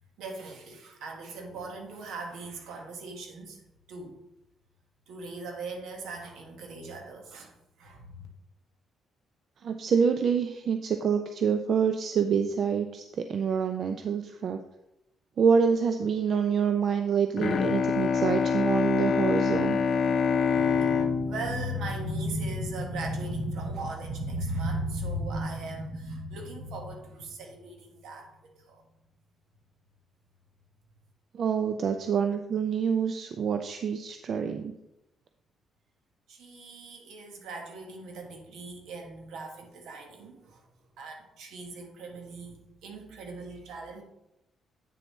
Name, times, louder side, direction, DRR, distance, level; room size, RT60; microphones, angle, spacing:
voice 1, 0.2-3.6 3.9-4.2 5.1-8.3 20.6-28.8 36.3-40.6 41.0-44.0, right 1 dB, 80° right, 2 dB, 1.5 m, -37 dB
voice 2, 9.6-14.6 15.4-19.8 31.3-34.7, right 6 dB, 60° right, 7 dB, 0.5 m, -26 dB
Bowed string instrument, 17.4-23.0, left 6 dB, 55° left, 0.6 m, -26 dB
8.4 x 6.7 x 3.1 m, 0.89 s
cardioid pair, 90°, 0 cm